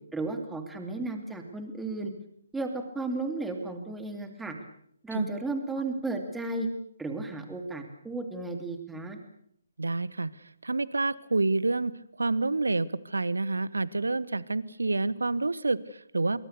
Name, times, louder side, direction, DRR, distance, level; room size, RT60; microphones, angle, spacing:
voice 1, 0.1-2.1 2.5-4.5 5.0-6.7 7.0-9.2, right 3 dB, 5° right, 5 dB, 2.8 m, -34 dB
voice 2, 9.8-11.9 12.2-16.5, right 3 dB, 70° right, 20 dB, 1.0 m, -28 dB
26.0 x 23.0 x 6.8 m, 0.67 s
figure-of-eight pair, 135°, 0 cm